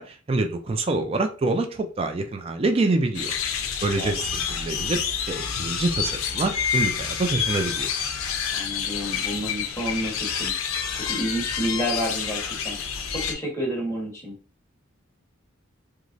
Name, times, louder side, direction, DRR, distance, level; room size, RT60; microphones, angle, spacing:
voice 1, 0.0-3.3 3.8-5.0 5.3-7.9, right 2 dB, 30° right, 5 dB, 0.3 m, -26 dB
sound 1, 3.1-13.3, left 7 dB, 75° left, 0.5 m, -28 dB
voice 2, 8.5-10.5 10.9-12.8 13.1-14.4, equal, 15° left, -4 dB, 1.1 m, -30 dB
3.0 x 2.4 x 2.5 m, 0.36 s
head